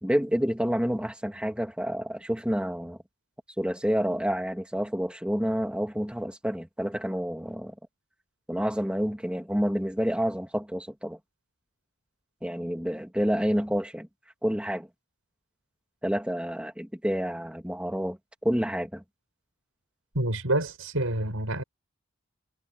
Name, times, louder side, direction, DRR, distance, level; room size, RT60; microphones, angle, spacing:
voice 1, 0.0-3.0 3.6-7.7 8.5-11.2 12.4-14.1 14.4-14.9 16.0-19.0, equal, 5° right, 2.4 m, -29 dB
voice 2, 20.1-21.6, right 1 dB, 90° right, 6.4 m, -27 dB
head